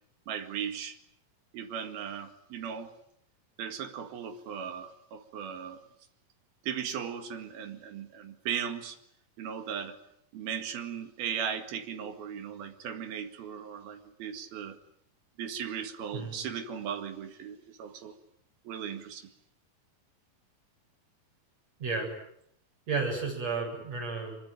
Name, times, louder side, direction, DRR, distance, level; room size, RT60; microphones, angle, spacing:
voice 1, 0.3-1.0 1.5-2.9 3.6-5.8 6.6-9.0 9.4-10.0 10.3-14.8 15.4-18.2 18.7-19.3, right 8 dB, 90° right, 7 dB, 3.9 m, -37 dB
voice 2, 22.9-24.4, right 4 dB, 45° right, 1 dB, 8.8 m, -32 dB
25.0 x 23.5 x 9.2 m, 0.70 s
omnidirectional pair, 4.2 m